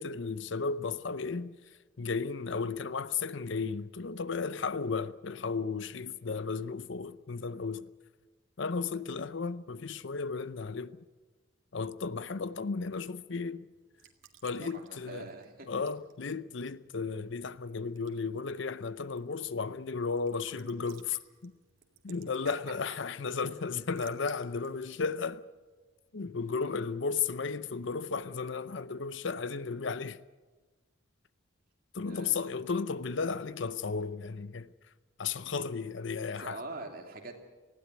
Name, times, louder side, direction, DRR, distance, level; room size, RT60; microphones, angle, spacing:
voice 1, 0.0-1.6 2.0-7.9 8.6-11.0 11.7-13.7 14.4-15.3 15.7-21.5 22.0-25.4 26.1-30.2 31.9-34.7 35.2-36.6, left 5 dB, 60° left, 0.6 m, -34 dB
Raindrop / Drip / Trickle dribble, 13.7-26.2, right 8 dB, 70° right, 2.1 m, -62 dB
voice 2, 14.6-15.7 32.0-32.6 36.3-37.4, right 2 dB, 45° right, 2.9 m, -44 dB
19.5 x 15.5 x 9.2 m
head